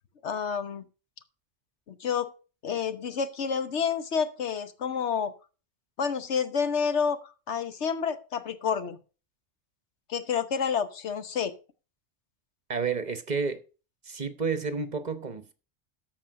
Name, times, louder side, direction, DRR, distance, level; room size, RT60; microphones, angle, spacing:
voice 1, 0.2-0.8 1.9-2.3 2.6-5.3 6.0-9.0 10.1-11.5, left 6 dB, 80° left, 1.3 m, -29 dB
voice 2, 12.7-13.6 14.1-15.5, right 5 dB, 40° right, 1.0 m, -30 dB
13.5 x 4.8 x 6.3 m
omnidirectional pair, 1.2 m